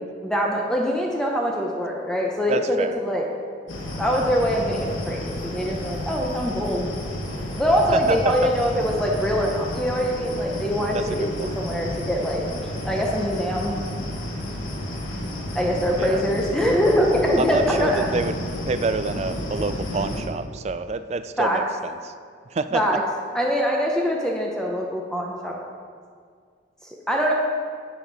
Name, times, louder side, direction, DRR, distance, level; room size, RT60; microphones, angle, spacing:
voice 1, 0.2-3.2 4.0-6.9 7.6-11.2 11.6-12.4 12.8-13.8 15.5-18.1 21.4-21.6 22.7-23.0 23.3-25.6 26.8-27.3, equal, 5° left, -1 dB, 0.7 m, -23 dB
voice 2, 2.5-3.0 7.9-8.3 10.9-11.6 16.0-16.2 17.4-22.1 22.5-22.8, right 4 dB, 35° right, 11 dB, 0.3 m, -27 dB
sound 1, 3.7-20.2, left 1 dB, 80° left, 1.4 m, -31 dB
10.5 x 8.0 x 4.0 m, 2.1 s
head